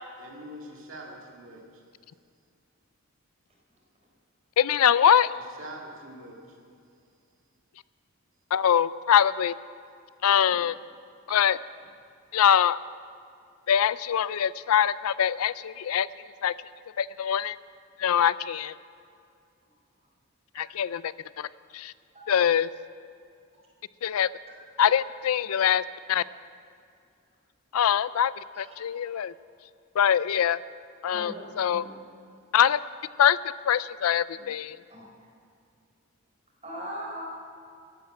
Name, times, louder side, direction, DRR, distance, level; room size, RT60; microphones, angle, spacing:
voice 1, 0.2-1.8 5.3-6.6, right 1 dB, 65° right, -1 dB, 2.2 m, -44 dB
voice 2, 4.6-5.3 8.5-9.5 10.2-10.8 11.3-11.6 12.3-12.8 13.7-16.5 17.0-17.6 18.0-18.7 20.5-21.9 22.3-22.7 24.0-24.3 24.8-26.2 27.7-29.3 29.9-30.6 31.0-31.8 32.5-32.8 33.2-33.4 33.6-34.8, left 9 dB, 90° left, 18 dB, 0.4 m, -23 dB
voice 3, 31.1-31.4 31.7-31.9 34.9-35.0 36.6-37.2, equal, 30° right, -2 dB, 4.0 m, -39 dB
13.5 x 11.5 x 7.6 m, 2.4 s
head